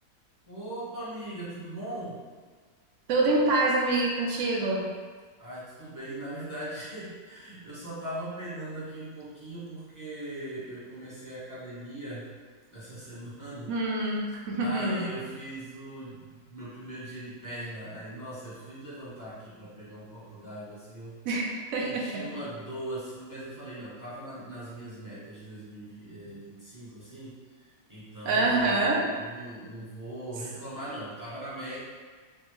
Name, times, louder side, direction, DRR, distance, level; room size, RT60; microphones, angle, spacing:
voice 1, 0.5-2.2 5.4-12.2 12.7-13.7 14.6-21.1 21.8-27.6 27.9-28.9 29.2-31.8, right 1 dB, 15° right, -11 dB, 0.8 m, -40 dB
voice 2, 3.1-4.9 13.7-15.1 21.2-22.2 28.2-29.0, right 2 dB, 65° right, -2 dB, 0.8 m, -26 dB
3.4 x 2.2 x 3.0 m, 1.5 s
omnidirectional pair, 1.6 m